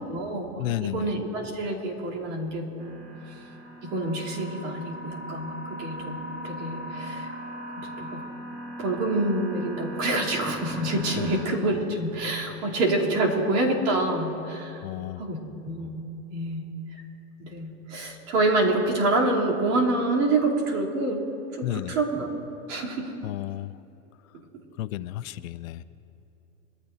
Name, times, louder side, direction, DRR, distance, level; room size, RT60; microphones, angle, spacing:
voice 1, 0.1-3.0 3.8-6.2 6.4-7.3 7.8-8.2 8.8-14.8 15.2-16.0 16.3-16.6 17.4-21.2 21.5-22.4 22.7-23.1, right 2 dB, 55° right, -4 dB, 3.3 m, -27 dB
voice 2, 0.6-1.1 11.2-11.3 14.8-15.2 21.6-22.0 23.2-23.7 24.8-25.8, left 14 dB, 70° left, 16 dB, 0.6 m, -32 dB
sound 1, 2.8-11.4, equal, 30° right, 2.2 m, -38 dB
22.5 x 14.5 x 2.7 m, 2.9 s
supercardioid pair, 140°, 43 cm